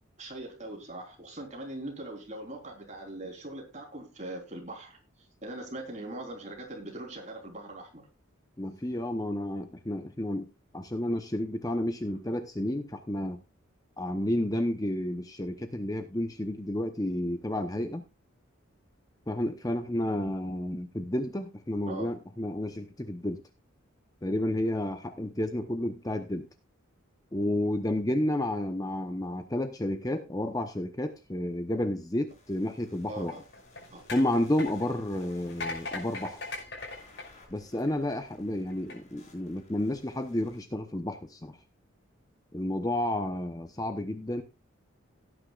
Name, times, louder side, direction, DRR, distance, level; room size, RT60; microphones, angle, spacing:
voice 1, 0.2-5.0 5.4-8.0 21.9-22.1 33.1-33.4 33.9-34.0, right 1 dB, 35° right, 1 dB, 3.6 m, -41 dB
voice 2, 8.6-13.4 14.0-18.0 19.3-23.4 24.2-26.5 27.3-33.4 34.1-36.4 37.5-41.6 42.5-44.4, left 1 dB, 15° left, 7 dB, 0.8 m, -31 dB
sound 1, 32.3-40.6, left 2 dB, 35° left, 6.4 m, -59 dB
sound 2, 33.2-38.2 38.7-39.0, left 3 dB, 55° left, 5.5 m, -40 dB
17.0 x 9.6 x 2.4 m, 0.26 s
head